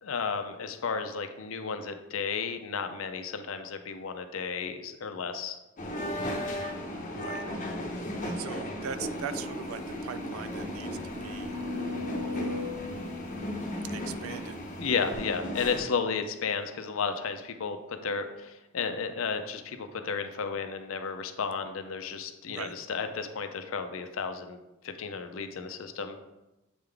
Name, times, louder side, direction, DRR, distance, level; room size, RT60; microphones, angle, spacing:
voice 1, 0.0-5.6 14.8-17.8 18.0-24.6 24.8-26.2, left 5 dB, 70° left, 7 dB, 0.5 m, -33 dB
sound 1, 5.8-15.8, equal, 35° left, 0.8 m, -36 dB
voice 2, 7.1-7.4 8.2-12.0 12.3-12.8 13.8-14.6 22.5-22.7, right 7 dB, 80° right, 13 dB, 0.4 m, -41 dB
sound 2, 9.1-9.2 9.6-9.7 10.2-14.5 15.1-15.2, left 4 dB, 20° right, 0.5 m, -39 dB
7.8 x 3.7 x 3.4 m, 0.99 s
head